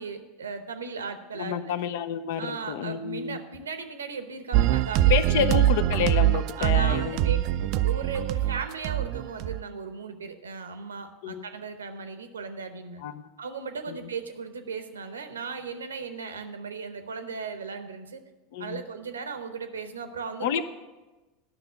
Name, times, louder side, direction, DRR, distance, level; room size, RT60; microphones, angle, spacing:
voice 1, 0.0-1.7 2.4-5.6 6.6-13.0 13.4-18.2 18.6-20.6, right 5 dB, 80° right, 9 dB, 0.8 m, -37 dB
voice 2, 1.3-3.4 5.1-7.4 11.2-11.5 13.0-13.2 13.9-14.0 18.5-18.8 20.4-20.6, left 9 dB, 65° left, 12 dB, 0.6 m, -29 dB
sound 1, 4.5-9.6, right 13 dB, 50° right, 0.3 m, -23 dB
10.5 x 6.0 x 6.7 m, 1.1 s
figure-of-eight pair, 80°, 0 cm